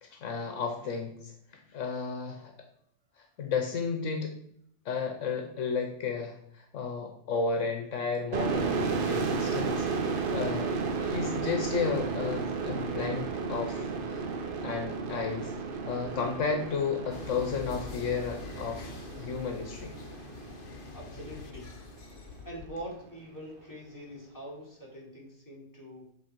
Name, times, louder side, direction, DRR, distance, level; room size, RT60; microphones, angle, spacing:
voice 1, 0.0-2.5 3.2-4.4 4.8-14.2 14.6-15.6 15.9-18.9 19.2-19.9, left 5 dB, 75° left, 4 dB, 1.2 m, -33 dB
sound 1, 8.3-21.8, right 4 dB, 50° right, 0.9 m, -33 dB
sound 2, 17.1-22.7, left 6 dB, 50° left, 0.8 m, -45 dB
voice 2, 20.9-21.9 22.4-26.1, equal, 15° left, -5 dB, 2.6 m, -44 dB
8.0 x 3.9 x 4.5 m, 0.69 s
omnidirectional pair, 1.3 m